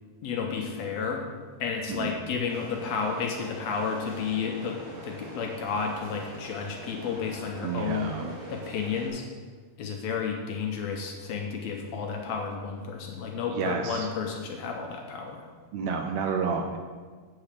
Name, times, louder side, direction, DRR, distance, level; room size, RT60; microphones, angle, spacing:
voice 1, 0.2-1.2 1.6-8.1 8.5-9.2 9.8-15.4, left 5 dB, 70° left, 1 dB, 1.8 m, -32 dB
Budapest metro, 2.5-9.1, right 1 dB, 40° right, 3.1 m, -43 dB
voice 2, 7.6-8.4 13.5-14.1 15.7-16.8, right 5 dB, 80° right, 5 dB, 1.7 m, -30 dB
8.3 x 4.3 x 6.6 m, 1.5 s
omnidirectional pair, 3.5 m